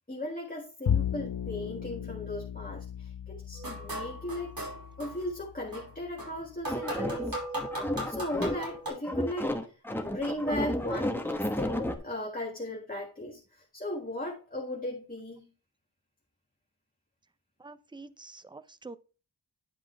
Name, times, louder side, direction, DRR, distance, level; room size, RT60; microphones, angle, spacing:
voice 1, 0.1-4.5 5.0-7.3 8.1-15.5, left 1 dB, 20° left, 1.7 m, -37 dB
Bowed string instrument, 0.9-7.3, left 8 dB, 85° left, 0.7 m, -36 dB
sound 1, 3.6-5.3 5.7-8.9, right 1 dB, 65° right, 4.8 m, -37 dB
sound 2, 6.7-8.8 9.0-12.0, left 1 dB, 5° left, 1.1 m, -32 dB
voice 2, 17.6-19.0, right 3 dB, 10° right, 0.5 m, -46 dB
10.5 x 5.2 x 3.3 m
wide cardioid pair, 60°, 38 cm